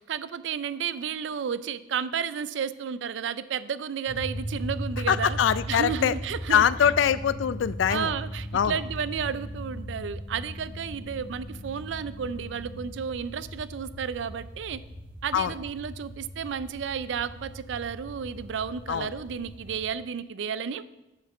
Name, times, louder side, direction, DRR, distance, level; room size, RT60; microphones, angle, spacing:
voice 1, 0.0-5.4 5.7-6.7 7.9-14.8 15.2-20.9, right 7 dB, 75° right, 15 dB, 0.4 m, -32 dB
sound 1, 4.1-19.9, equal, 10° right, 1.2 m, -38 dB
voice 2, 5.1-6.1 6.5-8.1 8.5-8.8 15.3-15.5 18.9-19.1, left 8 dB, 80° left, 16 dB, 0.3 m, -23 dB
sound 2, 6.7-12.7, left 2 dB, 45° left, 1.1 m, -50 dB
7.3 x 5.0 x 6.4 m, 0.99 s
head